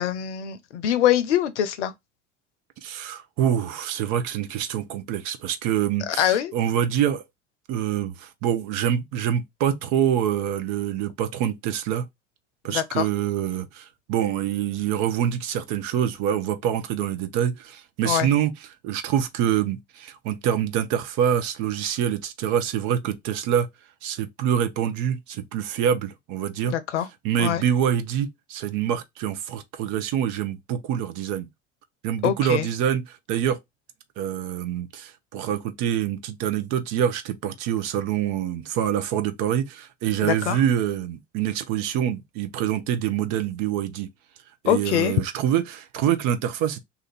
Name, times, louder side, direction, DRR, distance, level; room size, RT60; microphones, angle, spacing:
voice 1, 0.0-1.9 6.1-6.5 12.7-13.1 18.0-18.3 26.7-27.1 27.4-27.6 32.2-32.7 40.2-40.6 44.6-45.1, left 11 dB, 80° left, 0.6 m, -23 dB
voice 2, 2.8-7.2 7.7-12.0 12.6-18.5 18.8-23.7 24.0-26.7 27.2-31.5 32.0-33.6 34.2-44.1 44.6-46.8, right 10 dB, 60° right, 0.7 m, -25 dB
2.7 x 2.6 x 4.1 m
figure-of-eight pair, 65°, 35 cm